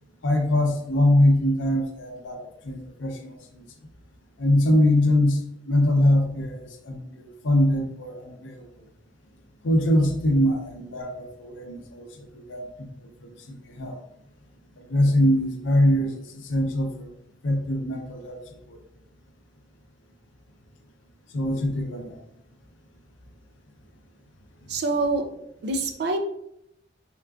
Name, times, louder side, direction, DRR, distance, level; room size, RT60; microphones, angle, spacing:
voice 1, 0.2-2.4 2.6-3.6 4.4-8.6 9.6-12.7 13.2-14.0 14.9-16.1 16.4-17.1 17.4-18.4 18.7-18.8 21.3-22.2, left 1 dB, 85° left, 3 dB, 0.5 m, -23 dB
voice 2, 24.7-25.2 25.6-26.2, right 3 dB, 60° right, 5 dB, 0.4 m, -25 dB
3.6 x 2.4 x 2.3 m, 0.79 s
head